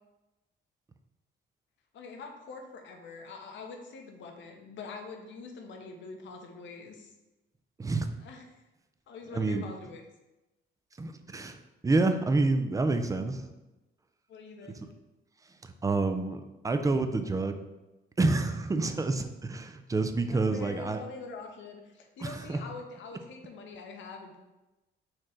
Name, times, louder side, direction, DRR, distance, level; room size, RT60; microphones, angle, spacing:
voice 1, 1.9-7.1 8.2-8.4 9.1-10.0 14.3-14.8 20.3-24.4, left 4 dB, 70° left, 3 dB, 0.8 m, -44 dB
voice 2, 9.3-9.6 11.0-13.5 14.8-14.9 15.6-17.6 18.2-21.0 22.2-22.6, right 3 dB, 15° right, 8 dB, 0.4 m, -28 dB
4.4 x 3.1 x 3.8 m, 1.0 s
cardioid pair, 90°, 20 cm